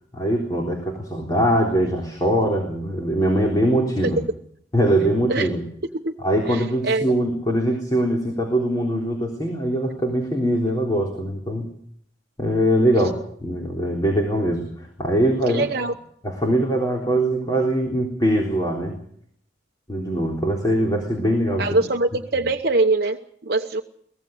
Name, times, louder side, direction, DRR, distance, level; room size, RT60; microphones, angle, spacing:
voice 1, 0.1-4.2 4.7-5.6 6.2-11.7 12.4-15.6 16.2-19.0 19.9-21.8, right 1 dB, 20° left, 0 dB, 3.7 m, -22 dB
voice 2, 6.5-7.1 15.5-15.9 21.6-23.8, right 2 dB, 55° right, 4 dB, 1.0 m, -23 dB
23.0 x 18.5 x 6.6 m, 0.66 s
head